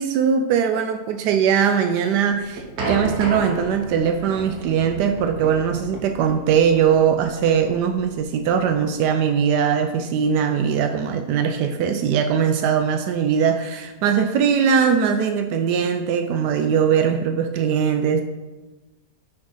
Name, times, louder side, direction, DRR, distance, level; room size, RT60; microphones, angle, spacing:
voice 1, 0.0-18.2, right 7 dB, 85° right, 6 dB, 1.2 m, -20 dB
sound 1, 2.1-9.0, right 2 dB, 70° right, 1.6 m, -33 dB
6.1 x 5.1 x 5.4 m, 1.1 s
omnidirectional pair, 1.7 m